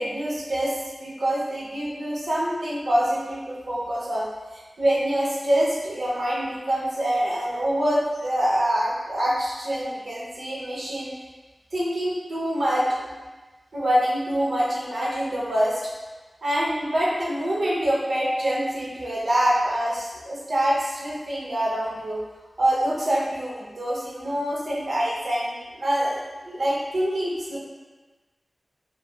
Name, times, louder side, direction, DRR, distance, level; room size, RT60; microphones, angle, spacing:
voice 1, 0.0-4.2 4.8-11.1 11.7-13.1 13.7-15.8 16.4-22.2 22.6-27.6, right 1 dB, 75° right, -6 dB, 0.7 m, -25 dB
3.1 x 2.2 x 2.2 m, 1.2 s
cardioid pair, 45°, 0 cm